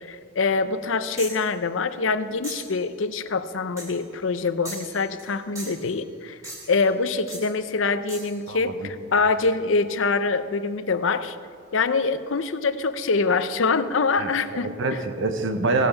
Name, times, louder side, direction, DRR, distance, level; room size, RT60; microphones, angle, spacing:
voice 1, 0.0-6.4 6.7-11.4 11.7-14.7, left 4 dB, 65° left, 12 dB, 0.6 m, -24 dB
sound 1, 1.2-1.5 2.4-2.8 3.8-4.0 4.6-5.3 5.6-5.9 6.4-6.8 7.3-7.5 8.1-8.4, right 1 dB, 15° right, 2.6 m, -38 dB
voice 2, 8.5-8.9 14.2-15.9, right 3 dB, 65° right, 7 dB, 1.1 m, -26 dB
16.5 x 8.0 x 5.7 m, 2.2 s
head